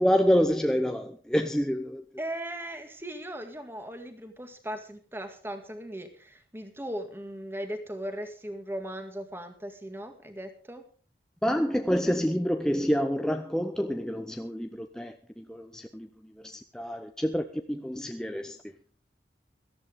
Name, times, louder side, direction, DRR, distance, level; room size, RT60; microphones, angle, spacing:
voice 1, 0.0-2.0 11.4-18.6, equal, 5° left, 0.7 m, -28 dB
voice 2, 2.2-10.8, right 1 dB, 15° right, 1.9 m, -38 dB
17.5 x 13.5 x 3.6 m
head